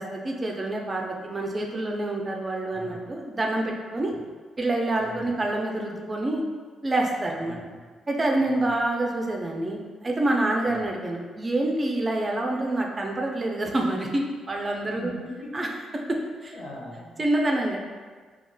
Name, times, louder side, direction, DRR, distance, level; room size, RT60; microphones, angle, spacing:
voice 1, 0.0-4.1 4.6-6.4 6.8-7.6 8.1-15.1 15.5-15.7 16.4-16.5 17.2-17.8, right 2 dB, 30° right, 0 dB, 0.5 m, -27 dB
voice 2, 2.6-3.0 4.1-4.2 5.0-5.4 7.4-7.8 8.4-8.7 10.6-10.9 15.0-15.7 16.1-16.2 16.5-17.1, left 1 dB, 75° left, -5 dB, 0.7 m, -41 dB
3.7 x 2.3 x 2.2 m, 1.5 s
cardioid pair, 70°, 0 cm